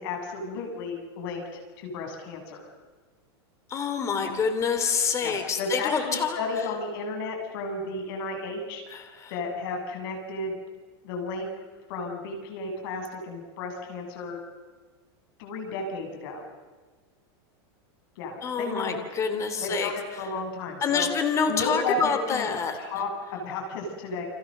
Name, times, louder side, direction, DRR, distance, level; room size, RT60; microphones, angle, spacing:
voice 1, 0.0-2.6 4.2-4.4 5.2-8.8 9.3-10.6 11.0-11.5 11.9-14.4 15.4-16.4 18.2-19.0 19.6-21.1 21.4-22.5 22.8-24.2, left 3 dB, 60° left, 3 dB, 7.9 m, -33 dB
voice 2, 3.7-6.4 8.9-9.3 18.4-19.9 20.8-22.8, left 6 dB, 20° left, 8 dB, 3.1 m, -27 dB
30.0 x 26.0 x 6.7 m, 1.4 s
supercardioid pair, 155°, 14 cm